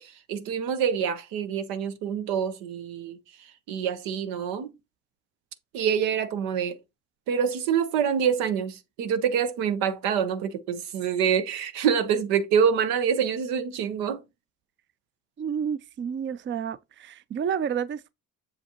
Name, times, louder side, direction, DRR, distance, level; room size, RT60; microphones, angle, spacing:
voice 1, 0.0-3.2 3.7-4.7 5.7-6.8 7.3-14.2, right 7 dB, 90° right, 0.9 m, -26 dB
voice 2, 15.4-18.1, right 7 dB, 35° right, 0.5 m, -30 dB
6.9 x 4.9 x 3.0 m
supercardioid pair, 70°, 34 cm